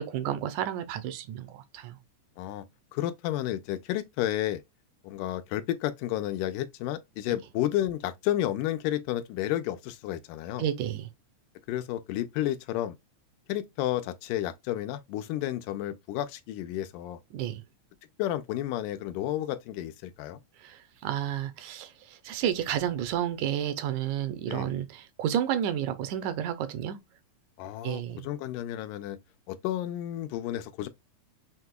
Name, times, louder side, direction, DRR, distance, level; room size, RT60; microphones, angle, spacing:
voice 1, 0.0-2.0 10.6-11.1 17.3-17.6 20.6-27.0 27.8-28.3, right 10 dB, 80° right, 2.0 m, -31 dB
voice 2, 2.9-4.6 5.0-10.7 11.7-13.0 13.5-17.2 18.2-20.4 24.5-24.7 27.6-29.2 29.5-30.9, left 13 dB, 85° left, 2.1 m, -31 dB
6.0 x 2.8 x 2.2 m
omnidirectional pair, 3.6 m